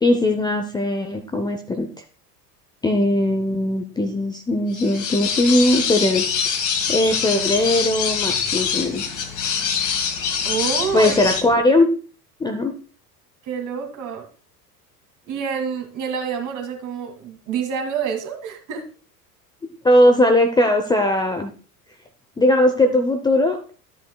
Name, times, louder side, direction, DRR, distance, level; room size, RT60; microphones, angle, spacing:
voice 1, 0.0-2.0 2.8-6.2 6.9-9.2 10.9-11.9 12.4-12.7 19.8-21.5 22.4-23.8, left 1 dB, 10° left, 5 dB, 0.6 m, -19 dB
sound 1, 4.7-11.4, left 6 dB, 40° left, 1.9 m, -24 dB
voice 2, 10.4-11.2 13.4-14.3 15.3-18.9, right 7 dB, 40° right, 4 dB, 1.9 m, -27 dB
12.0 x 7.9 x 2.2 m, 0.38 s
figure-of-eight pair, 75°, 47 cm